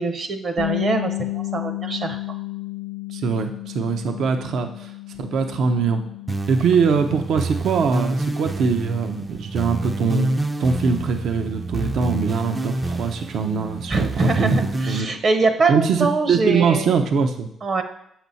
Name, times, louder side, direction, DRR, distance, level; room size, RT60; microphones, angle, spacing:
voice 1, 0.0-2.2 13.9-16.9 17.6-17.8, right 3 dB, 55° right, 7 dB, 1.0 m, -23 dB
Bass guitar, 0.6-6.8, left 18 dB, 55° left, 0.5 m, -32 dB
voice 2, 3.1-4.9 5.2-6.0 6.5-10.3 10.6-14.6 14.8-15.1 15.7-17.5, right 5 dB, 70° right, 6 dB, 0.7 m, -22 dB
sound 1, 6.3-15.0, right 2 dB, 25° right, 0.4 m, -28 dB
7.6 x 6.0 x 4.1 m, 0.75 s
cardioid pair, 90°, 0 cm